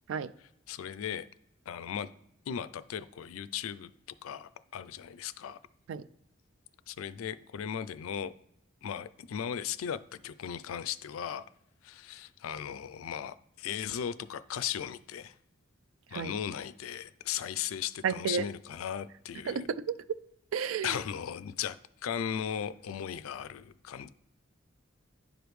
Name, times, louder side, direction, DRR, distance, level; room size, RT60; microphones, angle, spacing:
voice 1, 0.4-1.3 1.7-2.1 2.5-3.9 4.2-5.6 6.9-8.3 8.8-11.4 11.8-15.3 16.1-19.7 20.8-24.1, left 8 dB, 80° left, 0.4 m, -37 dB
voice 2, 18.0-18.4 19.5-20.0 20.5-20.9, right 6 dB, 65° right, 0.3 m, -31 dB
10.0 x 5.0 x 3.1 m
head